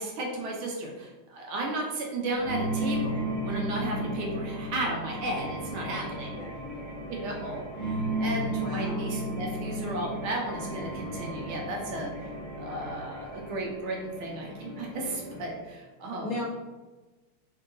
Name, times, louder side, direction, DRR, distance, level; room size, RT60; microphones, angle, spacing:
voice 1, 0.0-6.3 7.1-16.3, right 2 dB, 75° right, -1 dB, 1.8 m, -34 dB
sound 1, 2.4-15.6, equal, 10° left, 0.6 m, -34 dB
voice 2, 6.3-6.6 8.6-9.2 16.2-16.5, left 1 dB, 80° left, -2 dB, 0.7 m, -37 dB
3.9 x 3.5 x 3.8 m, 1.2 s
omnidirectional pair, 2.3 m